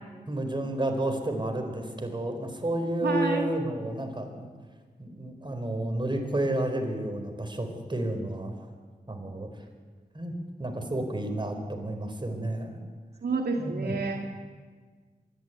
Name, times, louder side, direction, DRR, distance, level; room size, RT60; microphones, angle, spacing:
voice 1, 0.3-4.5 5.0-8.5 9.1-9.5 10.1-12.8 13.6-13.9, right 1 dB, 30° right, 5 dB, 4.3 m, -31 dB
voice 2, 3.0-3.5 13.2-14.2, right 4 dB, 80° right, 2 dB, 2.0 m, -29 dB
25.5 x 11.5 x 9.4 m, 1.5 s
cardioid pair, 45°, 16 cm